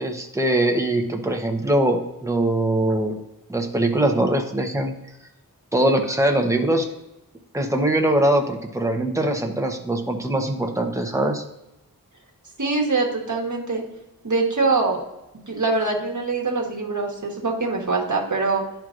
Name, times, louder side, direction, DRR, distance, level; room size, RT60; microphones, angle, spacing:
voice 1, 0.0-3.2 3.5-5.0 5.7-6.9 7.5-11.4, right 1 dB, 10° right, 2 dB, 0.9 m, -22 dB
voice 2, 12.6-13.8 14.2-15.0 15.5-18.6, right 3 dB, 50° right, 0 dB, 1.4 m, -23 dB
11.0 x 4.6 x 2.5 m, 0.91 s
wide cardioid pair, 55°, 37 cm